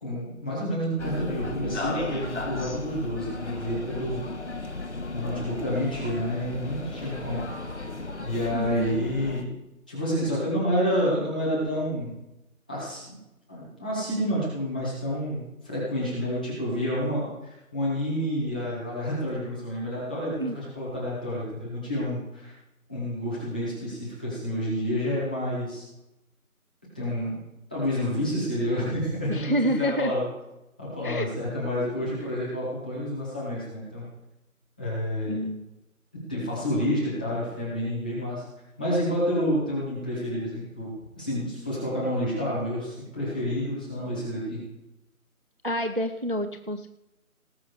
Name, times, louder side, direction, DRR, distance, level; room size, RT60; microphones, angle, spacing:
voice 1, 0.0-4.2 5.1-7.4 8.2-9.5 9.9-12.1 12.7-13.0 13.5-22.5 22.9-25.8 26.9-27.3 27.7-30.2 30.8-34.1 34.8-35.4 36.3-38.4 38.8-44.6, equal, 5° left, -9 dB, 1.5 m, -29 dB
sound 1, 1.0-9.4, left 2 dB, 50° left, 1.5 m, -35 dB
voice 2, 8.5-8.9 20.4-20.6 29.3-30.1 31.0-31.3 35.3-35.7 45.6-46.9, equal, 40° right, 8 dB, 0.5 m, -28 dB
18.5 x 7.4 x 4.8 m, 0.94 s
figure-of-eight pair, 175°, 44 cm